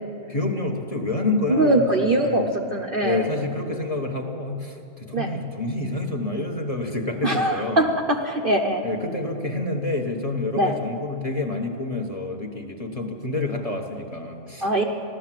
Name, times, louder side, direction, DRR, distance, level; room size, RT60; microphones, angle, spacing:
voice 1, 0.3-2.5 3.0-7.9 8.8-14.8, left 2 dB, 25° left, 3 dB, 1.1 m, -28 dB
voice 2, 1.5-3.3 5.1-5.3 7.2-8.8 10.5-10.8 14.6-14.8, right 1 dB, 45° right, 2 dB, 0.8 m, -22 dB
15.5 x 12.5 x 7.5 m, 2.6 s
omnidirectional pair, 1.6 m